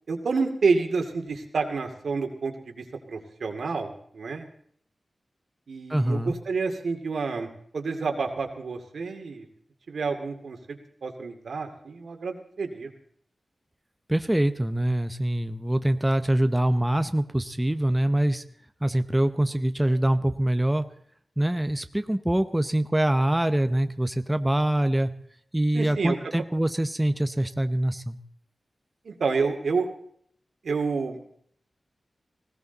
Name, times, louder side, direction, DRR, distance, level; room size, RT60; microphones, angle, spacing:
voice 1, 0.1-4.5 5.7-9.4 9.9-12.9 25.7-26.2 29.0-29.9 30.6-31.3, right 4 dB, 85° right, 4 dB, 2.4 m, -29 dB
voice 2, 5.9-6.3 14.1-18.4 18.8-20.8 21.4-25.1 25.5-28.2, right 1 dB, 10° right, 9 dB, 0.8 m, -24 dB
19.5 x 17.0 x 4.0 m, 0.63 s
wide cardioid pair, 105°, 0 cm